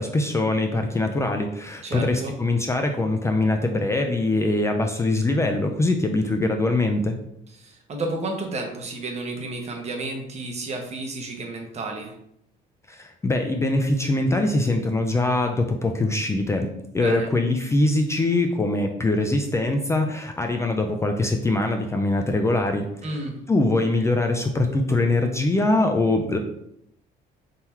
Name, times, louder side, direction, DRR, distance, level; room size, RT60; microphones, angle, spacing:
voice 1, 0.0-7.2 12.9-16.7 16.9-22.9 23.5-26.4, left 2 dB, 15° left, 4 dB, 0.4 m, -23 dB
voice 2, 1.8-2.4 7.6-12.1 16.9-17.3 23.0-23.3, right 2 dB, 40° right, 2 dB, 1.0 m, -31 dB
3.8 x 2.8 x 4.4 m, 0.76 s
cardioid pair, 110°, 17 cm